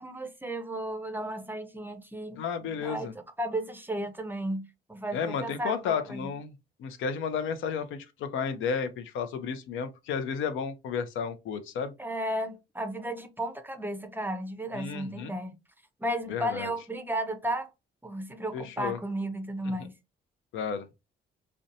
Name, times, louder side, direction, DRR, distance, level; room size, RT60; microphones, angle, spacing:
voice 1, 0.0-2.4 2.8-3.1 3.4-6.3 12.0-15.6 16.0-17.7 18.0-19.9, right 1 dB, 10° right, 0.5 m, -34 dB
voice 2, 2.4-3.1 5.1-6.5 6.8-11.9 14.7-15.3 16.3-16.7 18.5-19.0 19.8-19.9 20.5-20.9, left 6 dB, 80° left, 0.5 m, -32 dB
2.7 x 2.1 x 2.5 m
cardioid pair, 90°, 20 cm